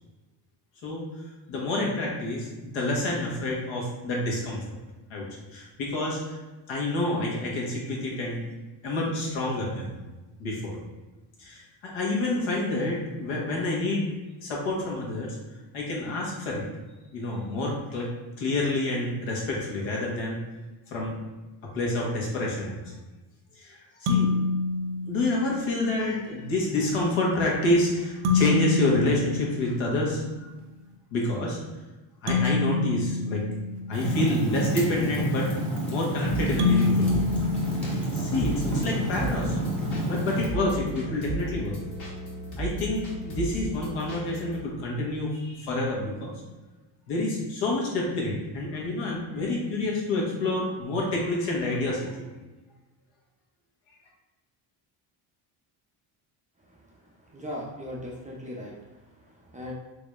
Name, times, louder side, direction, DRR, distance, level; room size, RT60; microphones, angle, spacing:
voice 1, 1.5-4.8 5.1-6.4 6.7-8.4 8.8-9.9 10.4-10.8 11.4-14.1 14.4-15.4 15.7-16.6 17.1-18.1 18.4-20.4 20.9-21.1 21.7-22.8 23.6-24.3 25.1-30.5 31.1-31.6 32.2-33.4 33.9-37.2 37.9-39.6 40.1-41.7 42.6-46.3 47.1-52.2, left 2 dB, 70° left, -3 dB, 1.2 m, -28 dB
sound 1, 24.1-25.7 28.2-30.3 32.3-34.4 36.6-38.6, left 4 dB, 90° right, 0.6 m, -27 dB
Fire, 33.9-40.5, equal, 5° left, 0.9 m, -29 dB
sound 2, 36.3-44.6, right 2 dB, 40° left, 1.4 m, -35 dB
voice 2, 57.3-59.7, left 1 dB, 15° right, -4 dB, 0.5 m, -39 dB
3.8 x 3.1 x 2.4 m, 1.2 s
cardioid pair, 115°, 48 cm